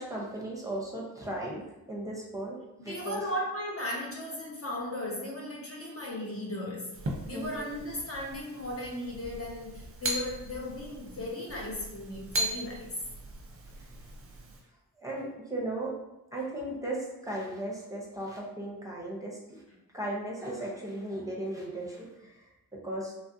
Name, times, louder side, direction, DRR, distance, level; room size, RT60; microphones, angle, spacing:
voice 1, 0.0-1.6 1.9-2.6 2.8-3.3 7.3-7.6 13.8-13.9 15.0-15.9 16.3-19.6 19.9-22.4 22.8-23.1, right 1 dB, 10° right, -4 dB, 0.8 m, -36 dB
voice 2, 2.9-7.0 7.3-12.9, left 1 dB, 35° left, -3 dB, 0.8 m, -36 dB
sound 1, 6.9-14.6, right 1 dB, 35° right, 0.7 m, -38 dB
3.0 x 2.3 x 2.7 m, 0.95 s
cardioid pair, 45°, 38 cm